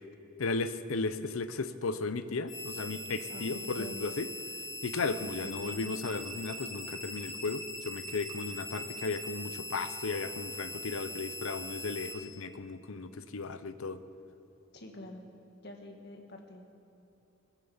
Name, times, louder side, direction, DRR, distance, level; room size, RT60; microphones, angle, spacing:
voice 1, 0.4-4.3 4.8-14.0, left 3 dB, 75° left, 12 dB, 0.7 m, -35 dB
sound 1, 2.5-12.1, left 1 dB, 35° left, 4.5 m, -41 dB
voice 2, 3.3-4.0 5.3-5.7 14.7-15.2 15.6-16.7, left 1 dB, 50° left, 3 dB, 1.7 m, -46 dB
20.0 x 9.1 x 7.1 m, 2.9 s
head